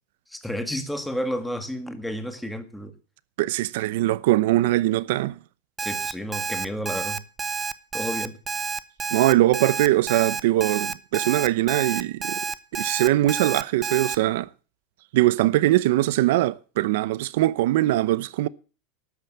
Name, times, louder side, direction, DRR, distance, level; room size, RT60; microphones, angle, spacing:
voice 1, 0.3-2.9 5.8-7.2 7.9-8.4, equal, ahead, 1.8 m, -31 dB
voice 2, 3.4-5.4 9.1-12.4 12.7-14.5 15.1-18.5, right 16 dB, 70° right, 0.8 m, -21 dB
Alarm, 5.8-14.2, right 5 dB, 15° right, 0.6 m, -29 dB
13.0 x 9.0 x 7.4 m
supercardioid pair, 155°, 0 cm